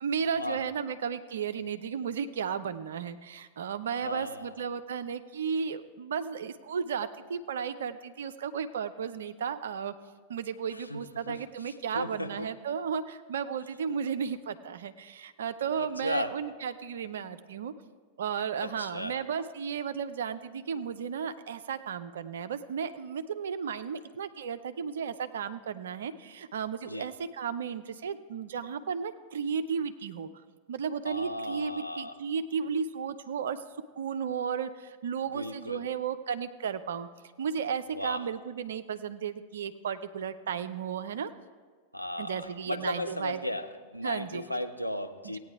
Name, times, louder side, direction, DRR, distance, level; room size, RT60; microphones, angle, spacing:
voice 1, 0.0-9.9 10.3-17.7 18.2-30.3 30.7-33.6 34.0-37.1 37.4-41.3 42.2-43.4 44.0-44.4 45.2-45.4, right 7 dB, 65° right, 11 dB, 0.5 m, -34 dB
voice 2, 4.0-4.5 10.7-12.5 15.7-16.3 18.6-19.2 26.9-27.1 31.1-32.2 35.3-35.8 37.9-38.3 41.9-45.4, left 1 dB, 90° left, 7 dB, 0.5 m, -36 dB
16.5 x 9.1 x 3.4 m, 1.5 s
figure-of-eight pair, 90°, 0 cm